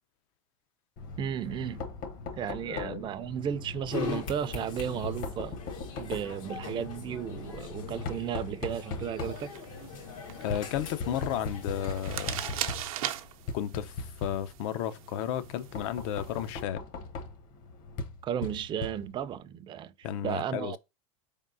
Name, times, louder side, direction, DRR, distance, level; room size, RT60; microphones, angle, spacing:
Knock, 1.0-19.4, left 3 dB, 55° left, 1.0 m, -40 dB
voice 1, 1.2-1.8 2.3-5.6 6.0-9.5 18.2-19.9 20.2-20.8, right 9 dB, 30° right, 0.4 m, -34 dB
voice 2, 2.6-3.1 10.4-12.4 13.5-16.8 20.0-20.8, left 10 dB, 70° left, 0.6 m, -33 dB
sound 1, 3.9-12.8, left 5 dB, 90° left, 1.7 m, -42 dB
sound 2, 9.2-16.6, right 12 dB, 90° right, 0.6 m, -41 dB
4.4 x 3.6 x 2.5 m
supercardioid pair, 120°, 17 cm